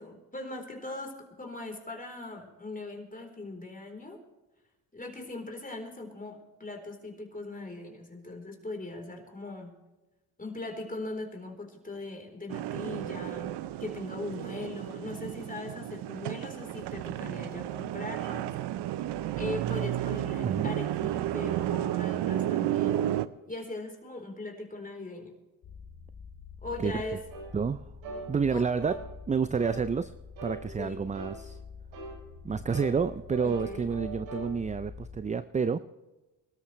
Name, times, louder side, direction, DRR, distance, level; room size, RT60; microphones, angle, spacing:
voice 1, 0.0-4.2 4.9-9.8 10.4-13.5 13.8-18.5 19.4-23.1 23.5-25.3 26.6-27.3 28.5-28.7 30.7-31.1 33.4-33.9, left 2 dB, 20° left, 2 dB, 3.9 m, -40 dB
sound 1, 12.5-23.3, right 12 dB, 60° right, 0.7 m, -32 dB
voice 2, 20.4-20.7 26.8-27.0 27.5-27.8 28.3-29.0 29.3-30.1 30.4-31.6 32.4-35.8, right 5 dB, 15° right, 13 dB, 0.4 m, -29 dB
sound 2, 25.6-35.2, left 5 dB, 50° left, 3.1 m, -47 dB
sound 3, 27.3-27.5 28.0-28.3 28.8-29.0 29.6-29.8 30.4-30.6 31.1-31.4 31.9-32.2 32.7-34.5, right 3 dB, 90° right, 5.5 m, -40 dB
24.0 x 13.0 x 3.2 m, 1.1 s
supercardioid pair, 70°, 46 cm